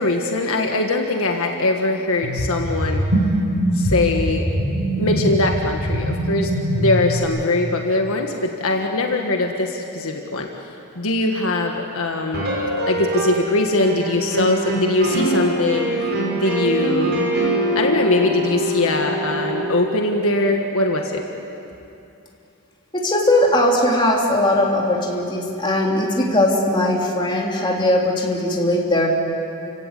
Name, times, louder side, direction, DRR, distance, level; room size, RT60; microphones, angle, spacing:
voice 1, 0.0-3.0 3.7-4.5 5.0-10.5 10.9-12.4 12.9-15.9 16.3-17.2 17.7-21.2, left 2 dB, 65° left, 2 dB, 1.7 m, -21 dB
sound 1, 2.2-7.2, equal, 80° right, 5.6 m, -22 dB
sound 2, 12.3-13.5 13.8-19.7, right 2 dB, 50° right, 6.2 m, -23 dB
voice 2, 22.9-29.1, left 1 dB, 20° left, -1 dB, 3.2 m, -19 dB
29.5 x 17.0 x 8.3 m, 2.8 s
head